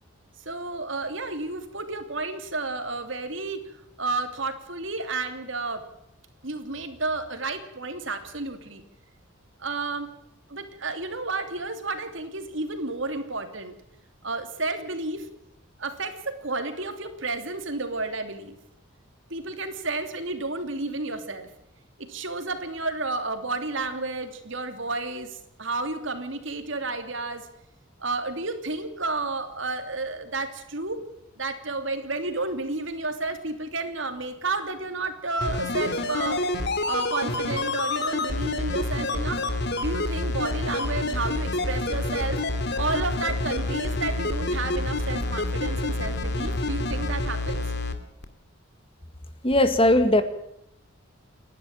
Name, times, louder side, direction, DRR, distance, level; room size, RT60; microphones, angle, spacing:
voice 1, 0.4-5.8 6.4-8.8 9.6-10.1 10.5-13.7 14.2-15.3 15.8-18.6 19.3-21.5 22.0-27.5 28.0-31.0 31.4-36.4 36.9-39.4 39.8-42.4 42.7-47.6, right 3 dB, 60° right, 8 dB, 3.0 m, -31 dB
sound 1, 35.4-47.9 48.2-48.3, left 2 dB, 55° left, 2.5 m, -28 dB
voice 2, 49.4-50.2, left 1 dB, 25° left, 10 dB, 1.9 m, -18 dB
29.5 x 12.0 x 8.9 m, 0.77 s
head